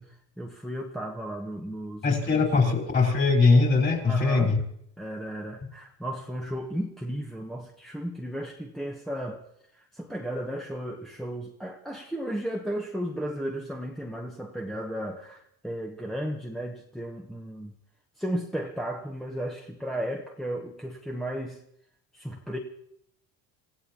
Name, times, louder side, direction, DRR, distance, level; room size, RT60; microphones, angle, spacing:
voice 1, 0.4-2.7 4.0-4.5 5.0-9.4 9.7-17.7 18.2-21.6 22.1-22.6, equal, ahead, 0 dB, 1.1 m, -34 dB
voice 2, 2.0-4.6, left 4 dB, 30° left, 1 dB, 4.3 m, -21 dB
27.0 x 15.5 x 3.0 m, 0.74 s
cardioid pair, 130°, 36 cm